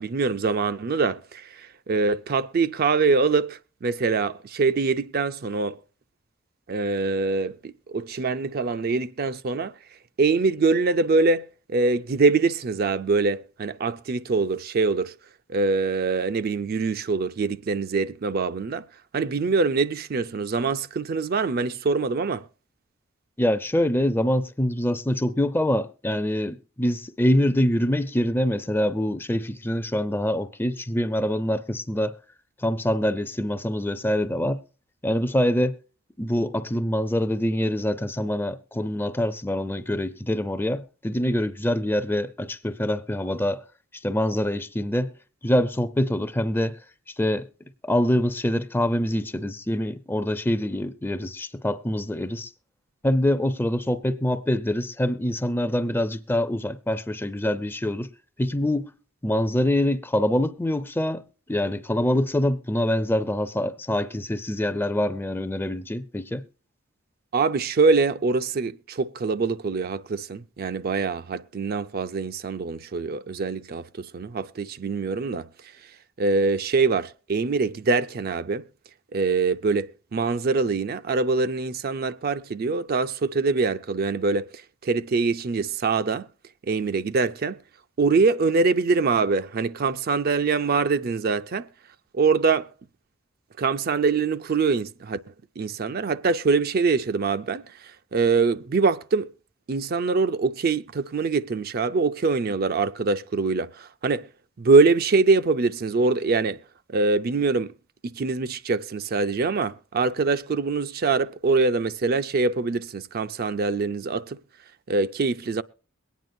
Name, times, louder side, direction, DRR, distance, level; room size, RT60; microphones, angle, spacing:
voice 1, 0.0-5.8 6.7-9.7 10.2-15.1 15.5-18.8 19.1-22.4 67.3-75.5 76.2-78.6 79.1-84.5 84.8-86.3 86.7-87.6 88.0-91.7 92.1-92.7 93.6-95.2 95.6-97.6 98.1-99.3 99.7-104.3 104.6-106.6 106.9-107.7 108.1-114.4 114.9-115.6, right 4 dB, 45° right, 0.4 m, -24 dB
voice 2, 23.4-32.2 32.6-34.6 35.0-35.8 36.2-43.6 44.0-45.1 45.4-46.8 47.2-47.5 47.8-52.5 53.0-58.1 58.4-58.9 59.2-61.2 61.5-66.5, left 1 dB, 10° left, 0.5 m, -25 dB
22.0 x 9.3 x 2.6 m
head